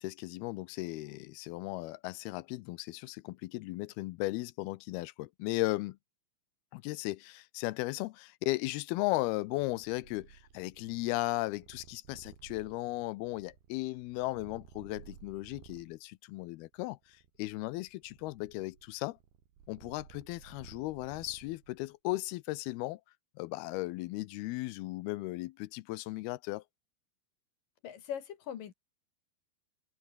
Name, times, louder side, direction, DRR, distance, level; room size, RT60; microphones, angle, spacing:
voice 1, 0.0-6.0 6.7-17.0 17.4-19.2 19.7-23.0 23.4-26.6, left 19 dB, 80° left, 2.4 m, -36 dB
Purr, 9.5-16.0 16.7-21.9, right 8 dB, 75° right, 5.0 m, -56 dB
voice 2, 27.8-28.7, left 9 dB, 60° left, 3.2 m, -40 dB
omnidirectional pair, 4.8 m